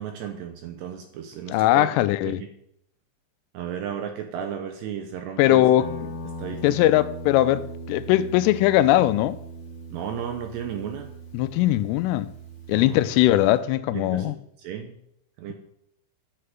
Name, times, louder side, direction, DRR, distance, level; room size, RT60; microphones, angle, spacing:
voice 1, 0.0-1.9 2.2-2.5 3.5-5.7 6.4-6.8 9.9-11.1 12.7-13.0 13.9-14.3 14.6-14.9 15.4-15.5, right 8 dB, 80° right, 2.5 m, -34 dB
voice 2, 1.5-2.4 5.4-5.9 6.6-9.4 11.3-12.3 12.7-14.4, left 14 dB, 85° left, 3.1 m, -20 dB
Guitar, 5.8-13.6, right 1 dB, 40° left, 1.6 m, -39 dB
10.5 x 6.6 x 9.2 m
omnidirectional pair, 5.8 m